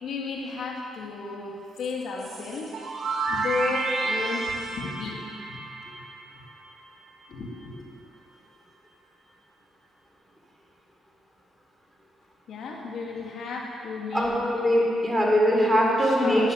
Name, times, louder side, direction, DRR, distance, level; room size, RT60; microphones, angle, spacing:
voice 1, 0.0-2.7 3.3-5.2 5.5-6.0 7.3-8.0 12.5-14.3 16.0-16.5, left 4 dB, 65° left, -1 dB, 2.3 m, -34 dB
sound 1, 2.2-6.9, right 3 dB, 50° right, 2.4 m, -31 dB
voice 2, 14.1-16.5, equal, 10° right, -3 dB, 4.0 m, -22 dB
14.0 x 10.5 x 7.5 m, 2.4 s
cardioid pair, 90°, 0 cm